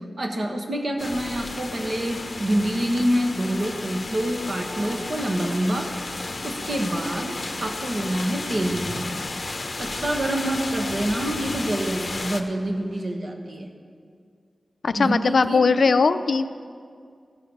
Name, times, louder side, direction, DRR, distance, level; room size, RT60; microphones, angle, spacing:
voice 1, 0.2-5.9 6.4-8.9 9.8-13.7 14.9-15.7, right 1 dB, 50° right, 2 dB, 1.2 m, -26 dB
sound 1, 1.0-12.4, left 2 dB, 40° left, 0.7 m, -33 dB
sound 2, 2.4-13.2, equal, 25° right, 1.0 m, -46 dB
voice 2, 14.8-16.5, left 4 dB, 65° left, 11 dB, 0.4 m, -20 dB
15.0 x 6.5 x 5.3 m, 2.2 s
wide cardioid pair, 105°, 0 cm